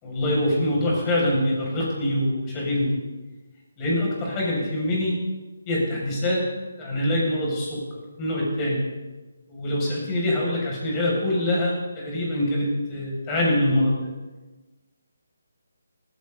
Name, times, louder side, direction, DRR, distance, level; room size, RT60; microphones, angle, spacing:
voice 1, 0.0-3.0 3.8-5.2 5.7-6.4 6.8-8.8 9.5-14.0, left 1 dB, 20° left, -4 dB, 6.7 m, -24 dB
18.5 x 16.5 x 4.1 m, 1.2 s
figure-of-eight pair, 150°, 0 cm